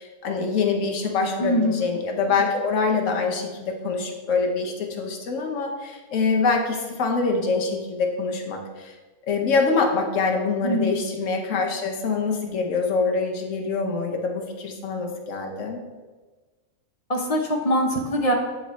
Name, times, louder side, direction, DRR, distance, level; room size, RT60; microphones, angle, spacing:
voice 1, 0.0-8.9 9.3-15.8, left 4 dB, 60° left, 2 dB, 1.2 m, -25 dB
voice 2, 1.4-1.9 10.6-10.9 17.1-18.3, equal, 40° left, 2 dB, 0.5 m, -23 dB
7.5 x 3.9 x 4.1 m, 1.3 s
omnidirectional pair, 1.5 m